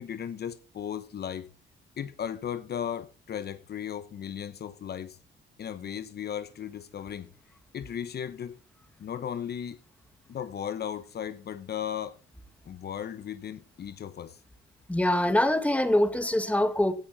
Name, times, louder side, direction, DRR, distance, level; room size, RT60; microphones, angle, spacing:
voice 1, 0.0-1.5 2.0-5.2 5.6-7.3 7.7-8.6 9.0-9.8 10.3-12.2 12.6-14.4, left 9 dB, 55° left, 1.0 m, -36 dB
voice 2, 14.9-16.9, left 1 dB, 5° left, 1.8 m, -24 dB
17.0 x 8.9 x 4.2 m
cardioid pair, 90°, 20 cm